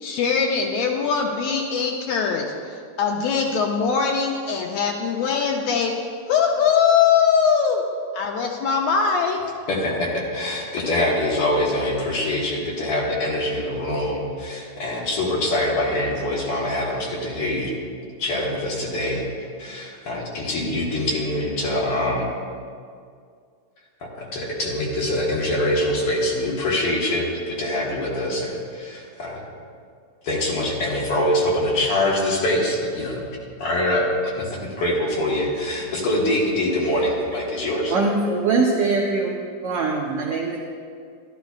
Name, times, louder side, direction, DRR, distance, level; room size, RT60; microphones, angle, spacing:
voice 1, 0.0-6.0 6.3-7.8 8.1-9.4, left 6 dB, 75° left, 1 dB, 1.7 m, -21 dB
voice 2, 9.7-17.7 18.2-19.3 19.6-22.3 24.2-29.4 30.2-33.2 33.6-34.1 34.4-37.9, left 1 dB, 55° left, -4 dB, 2.0 m, -24 dB
voice 3, 37.9-39.3 39.6-40.6, right 3 dB, 75° right, -1 dB, 1.3 m, -22 dB
12.5 x 11.5 x 2.4 m, 2.2 s
omnidirectional pair, 3.5 m